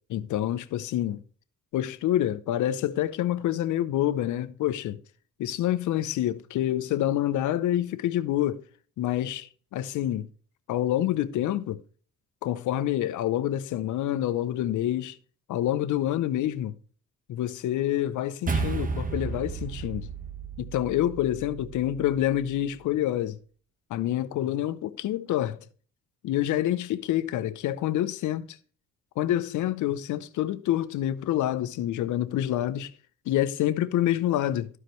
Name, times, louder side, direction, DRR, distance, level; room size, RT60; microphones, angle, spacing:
voice 1, 0.1-1.2 1.7-5.0 5.4-8.6 9.0-10.3 10.7-11.8 12.4-15.2 15.5-16.7 17.3-20.1 20.6-23.4 23.9-25.6 26.2-28.5 29.2-32.9 33.3-34.7, left 12 dB, 80° left, 0.7 m, -27 dB
sound 1, 18.5-23.0, right 4 dB, 25° right, 1.0 m, -34 dB
13.0 x 4.8 x 3.1 m
cardioid pair, 90°, 30 cm